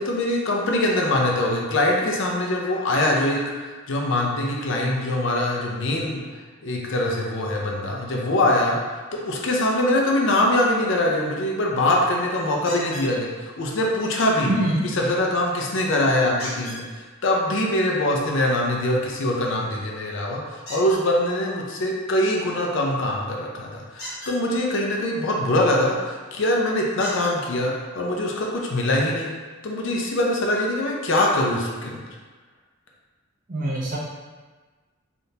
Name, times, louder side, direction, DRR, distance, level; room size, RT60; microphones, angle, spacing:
voice 1, 0.0-6.2 6.6-14.5 14.8-29.3 29.6-32.0, left 1 dB, 60° left, -1 dB, 0.5 m, -23 dB
sound 1, 12.7-13.1 16.4-16.8 20.6-21.0 23.9-24.4 26.0-26.1 27.0-27.3 28.3-28.4 28.9-29.0, equal, 85° left, 1.1 m, -36 dB
voice 2, 14.5-14.8 33.5-34.0, right 1 dB, 40° right, -6 dB, 0.7 m, -23 dB
3.5 x 2.4 x 2.7 m, 1.3 s
head